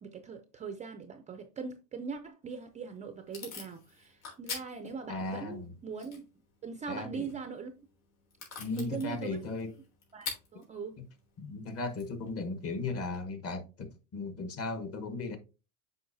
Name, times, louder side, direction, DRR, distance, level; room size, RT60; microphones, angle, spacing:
voice 1, 0.0-6.2 6.6-7.7 8.8-9.4 10.1-11.0, right 5 dB, 20° right, 0.4 m, -41 dB
Packing tape duct tape / Tearing, 2.4-13.2, left 5 dB, 85° left, 3.5 m, -48 dB
voice 2, 5.1-5.7 6.9-7.3 8.6-9.7 11.4-15.4, left 3 dB, 35° left, 1.2 m, -36 dB
7.7 x 5.0 x 2.6 m
supercardioid pair, 130°, 41 cm